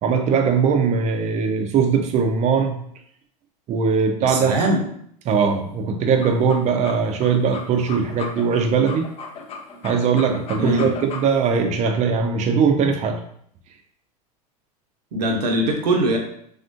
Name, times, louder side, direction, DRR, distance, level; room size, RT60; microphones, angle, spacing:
voice 1, 0.0-2.8 3.7-4.5 5.3-9.0 9.8-13.2, right 5 dB, 35° right, 5 dB, 0.5 m, -20 dB
voice 2, 4.2-4.8 10.6-10.9 15.1-16.2, right 1 dB, 75° right, 2 dB, 0.7 m, -21 dB
sound 1, 6.1-11.5, left 5 dB, 30° left, 0.5 m, -36 dB
3.4 x 2.4 x 2.5 m, 0.66 s
hypercardioid pair, 90°, 21 cm